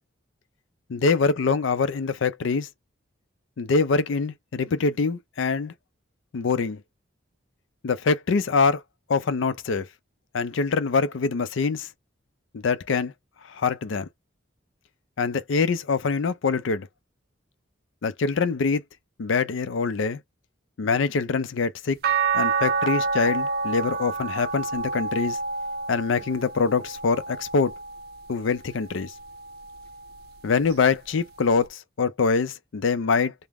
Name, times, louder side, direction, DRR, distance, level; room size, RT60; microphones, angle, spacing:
voice 1, 0.9-2.7 3.6-5.7 6.3-6.8 7.8-8.8 9.1-9.9 10.3-11.9 12.5-13.1 13.5-14.1 15.2-16.9 18.0-18.8 19.2-20.2 20.8-22.0 22.3-25.4 25.9-27.7 28.3-29.1 30.4-33.3, left 4 dB, 80° left, 0.5 m, -24 dB
sound 1, 22.0-28.3 28.9-30.3 31.7-31.8, right 4 dB, 50° right, 0.4 m, -29 dB
3.1 x 2.0 x 3.5 m
head